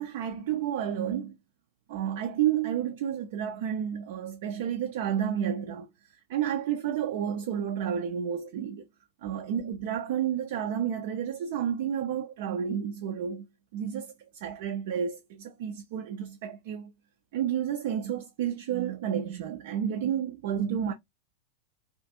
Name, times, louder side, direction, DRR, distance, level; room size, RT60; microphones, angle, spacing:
voice 1, 0.0-1.4 1.9-5.9 6.3-8.9 9.2-13.5 13.7-16.9 17.3-20.9, right 9 dB, 50° right, 0.3 m, -31 dB
2.5 x 2.4 x 2.5 m
figure-of-eight pair, 90°, 0 cm